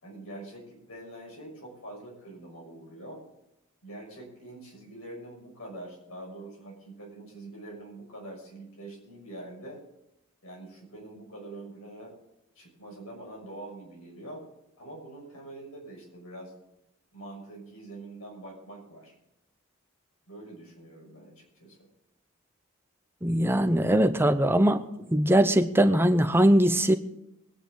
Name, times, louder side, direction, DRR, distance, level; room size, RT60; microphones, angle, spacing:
voice 1, 0.0-3.2 3.8-9.8 10.4-12.1 12.5-14.4 14.8-16.5 17.1-19.1 20.3-21.9, right 1 dB, 75° left, 0 dB, 6.3 m, -44 dB
voice 2, 23.2-24.8 25.1-26.9, right 1 dB, 10° right, 10 dB, 0.7 m, -21 dB
22.0 x 10.0 x 3.9 m, 0.88 s
head